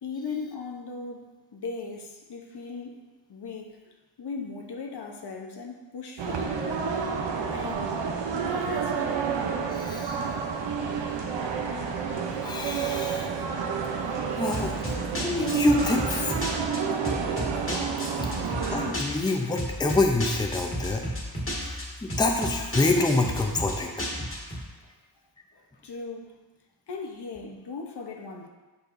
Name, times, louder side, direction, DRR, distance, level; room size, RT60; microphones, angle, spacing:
voice 1, 0.0-3.0 3.3-6.9 7.5-7.9 8.3-9.0 25.5-26.4 26.9-28.5, left 4 dB, 65° left, 2 dB, 0.9 m, -38 dB
sound 1, 6.2-18.9, right 6 dB, 85° right, 0.8 m, -29 dB
voice 2, 9.7-10.2 12.4-13.3 13.5-13.7 14.3-16.3 18.2-21.1 21.6-21.8 22.2-24.1, left 3 dB, 10° left, 2 dB, 0.6 m, -27 dB
sound 2, 14.5-24.6, equal, 30° left, 1.6 m, -33 dB
8.1 x 6.5 x 2.6 m, 1.2 s
wide cardioid pair, 95°, 42 cm